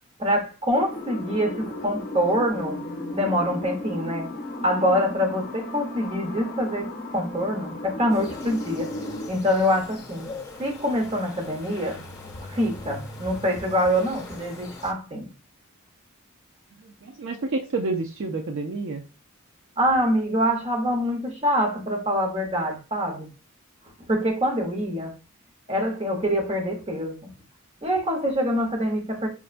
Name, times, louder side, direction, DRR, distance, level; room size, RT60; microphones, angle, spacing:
voice 1, 0.2-2.8 3.1-4.3 4.6-9.0 9.3-12.0 12.4-15.3 19.8-23.3 24.1-25.1 25.7-27.3 27.8-29.3, equal, 30° right, 1.0 m, -25 dB
sound 1, 0.7-9.3, left 1 dB, 40° left, 0.6 m, -35 dB
sound 2, 8.1-14.9, left 2 dB, 15° left, 1.0 m, -41 dB
voice 2, 17.0-19.0, right 3 dB, 60° right, 0.4 m, -29 dB
5.7 x 2.1 x 2.5 m
head